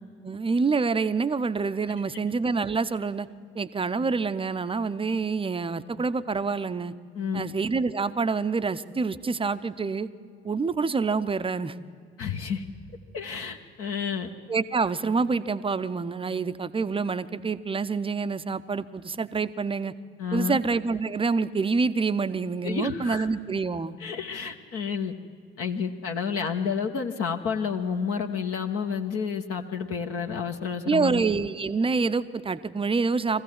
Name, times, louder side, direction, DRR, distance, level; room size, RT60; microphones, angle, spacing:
voice 1, 0.2-3.3 3.5-6.9 7.3-10.1 10.4-11.7 14.5-19.9 20.3-24.0 30.9-33.4, right 4 dB, 20° right, 13 dB, 0.7 m, -27 dB
voice 2, 12.2-12.6 13.1-14.3 20.2-20.6 22.6-23.3 24.0-25.1 25.6-31.2, left 6 dB, 50° left, 3 dB, 1.2 m, -30 dB
23.0 x 15.0 x 7.5 m, 2.2 s
figure-of-eight pair, 50°, 30 cm